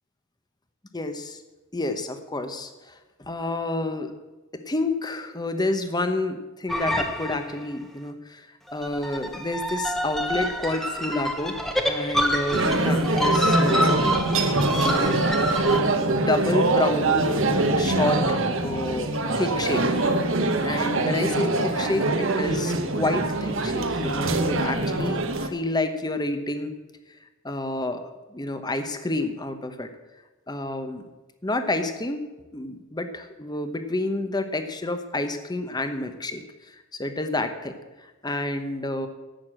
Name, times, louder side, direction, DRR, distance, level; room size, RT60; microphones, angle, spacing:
voice 1, 0.9-1.4 1.7-4.1 4.5-8.5 8.7-11.6 11.9-13.9 14.8-15.2 15.9-19.8 20.6-26.7 27.4-29.9 30.5-31.0 31.4-32.2 32.5-37.8 38.0-39.1, left 2 dB, 20° left, 8 dB, 1.0 m, -29 dB
sound 1, 6.7-7.7 8.7-15.8, equal, ahead, 1.1 m, -27 dB
sound 2, 12.5-25.5, right 2 dB, 65° right, 1.2 m, -23 dB
11.5 x 8.2 x 7.6 m, 1.1 s
head